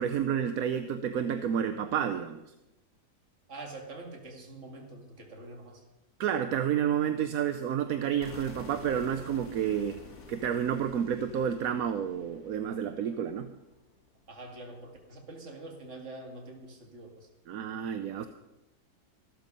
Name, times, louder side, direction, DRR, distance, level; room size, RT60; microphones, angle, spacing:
voice 1, 0.0-2.4 6.2-10.0 10.3-13.5 17.5-18.3, right 8 dB, 65° right, 9 dB, 1.1 m, -30 dB
voice 2, 3.5-5.8 14.3-17.3, right 2 dB, 45° right, 2 dB, 2.5 m, -45 dB
sound 1, 8.2-14.1, left 3 dB, 45° left, 2.1 m, -50 dB
14.5 x 12.5 x 5.4 m, 0.97 s
omnidirectional pair, 1.8 m